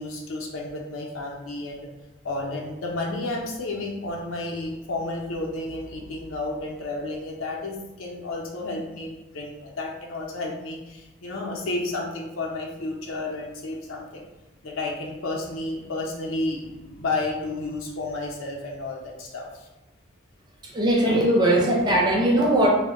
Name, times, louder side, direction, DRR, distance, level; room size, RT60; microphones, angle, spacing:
voice 1, 0.0-1.9 2.2-14.3 14.6-19.7, left 2 dB, 90° left, -1 dB, 0.6 m, -32 dB
voice 2, 20.7-22.7, right 1 dB, 20° right, -2 dB, 0.4 m, -20 dB
2.1 x 2.1 x 3.6 m, 1.0 s
head